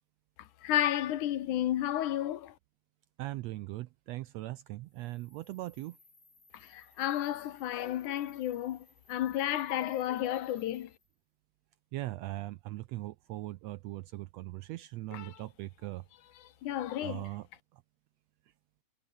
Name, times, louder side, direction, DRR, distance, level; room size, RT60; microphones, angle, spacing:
voice 1, 0.6-2.5 6.5-10.9 15.1-15.4 16.4-17.3, left 12 dB, 75° left, 2.7 m, -32 dB
voice 2, 3.2-6.0 11.9-16.0 17.0-17.5, right 17 dB, 80° right, 1.5 m, -40 dB
sound 1, 4.8-11.2, left 3 dB, 35° left, 7.4 m, -64 dB
omnidirectional pair, 3.5 m